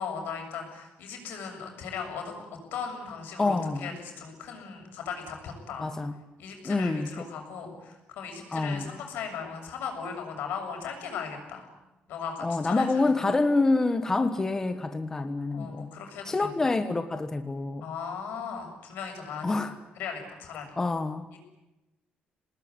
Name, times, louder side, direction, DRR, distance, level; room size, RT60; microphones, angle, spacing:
voice 1, 0.0-2.3 2.7-5.9 6.4-11.7 12.1-13.1 15.5-16.5 17.8-20.8 21.3-21.4, left 6 dB, 80° left, 3 dB, 7.2 m, -38 dB
voice 2, 3.4-3.9 5.8-6.1 6.6-7.1 8.5-8.9 12.4-15.9 16.3-17.9 19.4-19.7 20.8-21.2, left 3 dB, 15° left, 9 dB, 1.3 m, -27 dB
26.5 x 19.5 x 9.7 m, 1.0 s
cardioid pair, 150°, 3 cm